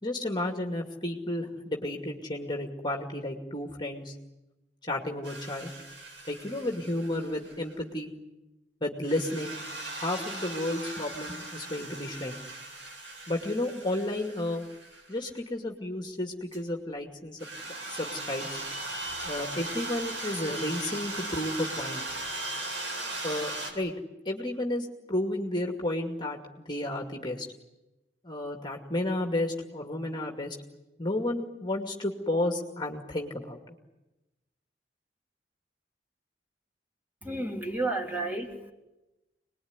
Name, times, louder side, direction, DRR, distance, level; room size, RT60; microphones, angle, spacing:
voice 1, 0.0-4.1 4.9-5.7 6.3-8.1 8.8-9.5 9.9-12.4 13.3-14.7 15.1-17.4 17.9-18.5 19.2-22.0 23.2-23.9 24.3-26.4 26.7-27.5 28.2-30.6 31.0-33.6, left 1 dB, 25° left, 2 dB, 2.4 m, -32 dB
sound 1, 5.2-7.7 9.0-15.2 16.5-16.6 17.4-23.7, right 2 dB, 90° right, 7.4 m, -38 dB
voice 2, 37.2-38.7, right 2 dB, 10° right, 0 dB, 3.6 m, -32 dB
27.0 x 21.0 x 9.7 m, 1.0 s
head